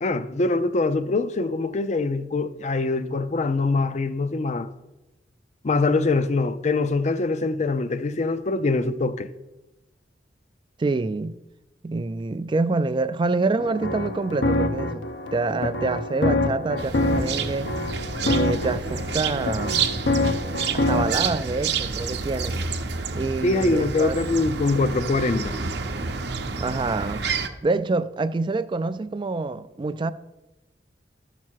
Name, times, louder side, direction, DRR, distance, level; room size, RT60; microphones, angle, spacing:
voice 1, 0.0-4.7 5.6-9.3 23.4-25.5, left 3 dB, 40° left, 0.5 m, -23 dB
voice 2, 10.8-11.4 11.8-15.0 15.3-17.7 18.2-19.8 20.7-22.5 23.1-24.2 26.6-27.3 27.6-30.1, right 3 dB, 25° right, 0.3 m, -26 dB
sound 1, 13.6-21.3, left 2 dB, 90° left, 0.9 m, -26 dB
sound 2, 16.8-27.5, right 5 dB, 65° right, 0.7 m, -29 dB
13.0 x 6.0 x 4.5 m
head